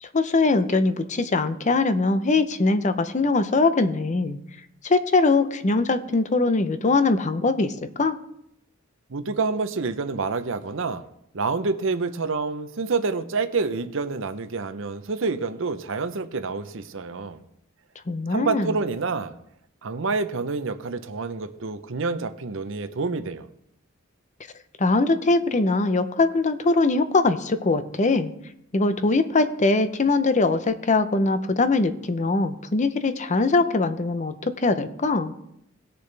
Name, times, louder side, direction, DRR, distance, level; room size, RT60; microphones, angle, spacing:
voice 1, 0.0-4.4 4.8-7.7 8.0-8.2 18.1-18.8 24.8-28.3 28.7-35.3, left 3 dB, 35° left, 0.7 m, -22 dB
voice 2, 9.1-11.0 11.3-17.4 18.3-19.3 19.8-23.5, right 4 dB, 65° right, 0.7 m, -28 dB
18.5 x 6.8 x 3.4 m
head